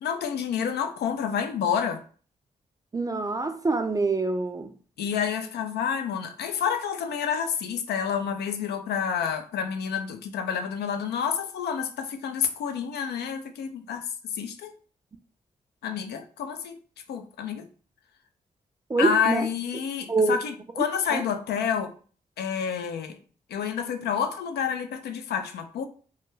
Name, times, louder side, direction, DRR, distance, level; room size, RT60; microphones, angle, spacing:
voice 1, 0.0-2.0 5.0-14.0 14.3-14.7 15.8-16.8 17.1-17.7 19.0-21.9 22.4-23.2 23.5-25.9, left 7 dB, 85° left, 0.4 m, -29 dB
voice 2, 2.9-4.7 18.9-19.5 20.1-20.4 21.1-21.2, right 3 dB, 20° right, 0.3 m, -25 dB
2.3 x 2.2 x 3.0 m
supercardioid pair, 45°, 16 cm